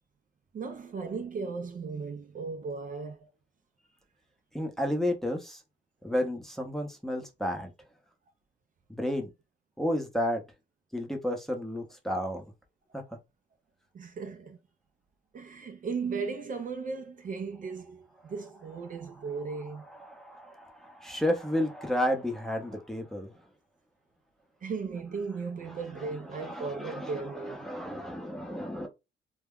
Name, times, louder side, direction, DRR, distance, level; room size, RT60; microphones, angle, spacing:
voice 1, 0.5-3.3 12.9-13.0 13.9-14.6 15.3-19.9 24.6-27.7, right 4 dB, 45° right, 0.5 m, -36 dB
voice 2, 4.5-5.6 6.0-7.7 8.9-9.3 9.8-10.4 10.9-12.4 12.9-13.0 19.9-23.3 26.3-28.9, left 1 dB, ahead, 0.7 m, -32 dB
2.2 x 2.1 x 3.6 m
cardioid pair, 90°, 20 cm